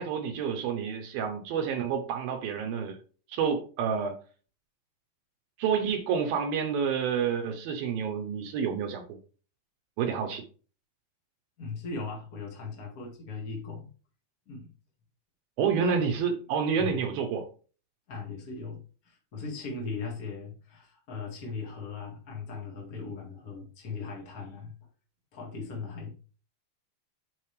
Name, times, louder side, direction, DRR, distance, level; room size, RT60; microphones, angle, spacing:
voice 1, 0.0-3.0 3.3-4.2 5.6-9.2 10.0-10.4 15.6-17.5, right 7 dB, 75° right, 6 dB, 2.2 m, -29 dB
voice 2, 11.6-13.9 14.4-14.7 15.8-16.0 16.8-17.0 18.1-24.7 25.3-26.1, left 4 dB, 85° left, -1 dB, 0.8 m, -38 dB
9.1 x 5.4 x 3.3 m, 0.38 s
omnidirectional pair, 5.2 m